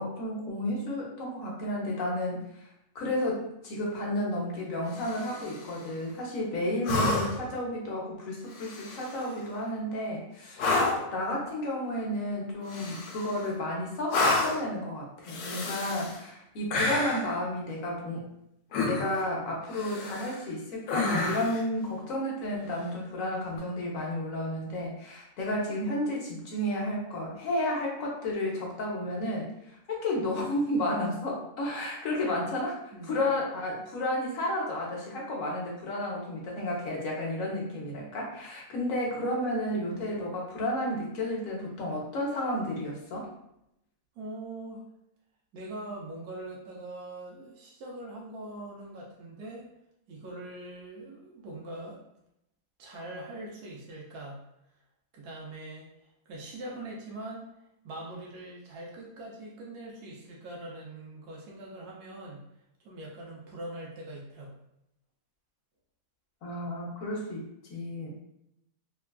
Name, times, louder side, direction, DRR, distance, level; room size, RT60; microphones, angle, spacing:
voice 1, 0.0-2.4 2.9-10.9 11.1-18.3 18.9-29.5 29.9-32.8 33.1-43.3 66.4-68.1, left 1 dB, 65° left, -2 dB, 1.2 m, -32 dB
sound 1, 4.9-5.6 6.8-7.5 8.5-9.3 10.6-11.1 12.7-13.4 14.1-14.7 15.3-16.2 16.7-17.3 18.7-19.3 19.7-20.4 20.9-21.6 23.5-23.6, left 2 dB, 90° left, 1.1 m, -29 dB
voice 2, 32.9-33.4 44.2-44.8 45.5-49.7 50.1-52.0 52.8-54.4 55.1-57.4 57.8-62.4 62.8-64.6, right 1 dB, 85° right, -3 dB, 1.2 m, -42 dB
3.4 x 2.3 x 2.2 m, 0.80 s
omnidirectional pair, 1.6 m